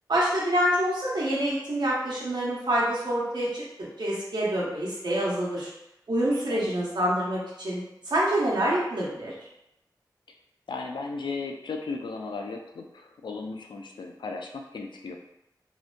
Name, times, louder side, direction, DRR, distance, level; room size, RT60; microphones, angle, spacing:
voice 1, 0.1-3.6 4.0-5.7 6.1-9.3, right 1 dB, 75° right, -6 dB, 0.9 m, -26 dB
voice 2, 10.7-15.2, left 4 dB, 85° left, 3 dB, 0.3 m, -36 dB
2.7 x 2.1 x 2.5 m, 0.84 s
wide cardioid pair, 60°, 8 cm